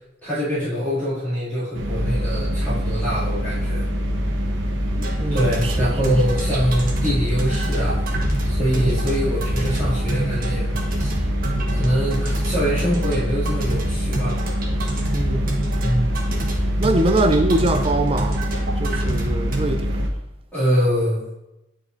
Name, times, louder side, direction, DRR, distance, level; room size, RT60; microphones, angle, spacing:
voice 1, 0.2-3.8 5.0-5.1 5.3-8.0 8.4-11.1 11.7-14.4 15.8-16.1 20.5-21.2, equal, 10° left, 2.4 m, -24 dB
sound 1, 1.7-20.1, equal, 70° right, 1.0 m, -24 dB
sound 2, 5.0-19.6, right 2 dB, 50° right, 1.2 m, -30 dB
voice 2, 5.2-6.4 8.7-9.1 15.1-15.6 16.8-18.5 18.8-20.1, right 2 dB, 30° right, 0.5 m, -23 dB
9.3 x 4.6 x 2.6 m
head